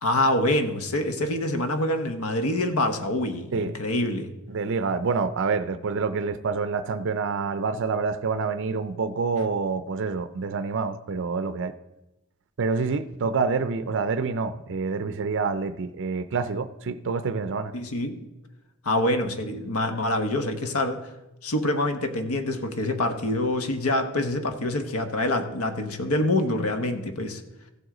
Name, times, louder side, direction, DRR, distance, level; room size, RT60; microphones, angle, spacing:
voice 1, 0.0-4.3 17.7-18.2 18.8-21.0 21.4-27.4, left 1 dB, 75° left, 1.0 m, -26 dB
voice 2, 4.5-11.7 12.6-17.7, right 4 dB, 55° right, 0.5 m, -27 dB
15.0 x 7.9 x 3.8 m
head